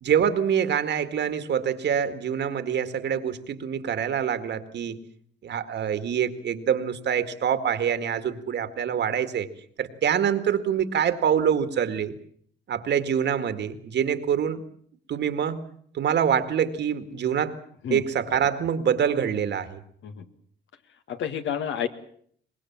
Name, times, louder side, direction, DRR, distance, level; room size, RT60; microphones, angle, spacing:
voice 1, 0.0-5.0 5.4-9.5 9.8-12.1 12.7-14.6 15.1-15.6 15.9-17.6 17.9-19.8, right 8 dB, 60° right, 11 dB, 2.0 m, -25 dB
voice 2, 21.1-21.9, left 8 dB, 70° left, 8 dB, 2.0 m, -29 dB
23.5 x 20.5 x 7.4 m, 0.62 s
cardioid pair, 90°, 20 cm